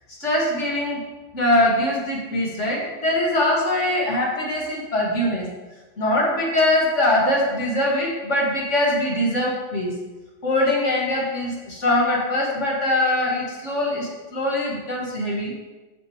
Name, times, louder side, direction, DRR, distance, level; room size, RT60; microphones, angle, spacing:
voice 1, 0.2-1.0 1.3-5.5 6.0-10.0 10.4-15.5, left 1 dB, 80° left, -3 dB, 2.5 m, -22 dB
13.0 x 6.6 x 3.2 m, 1.2 s
omnidirectional pair, 1.2 m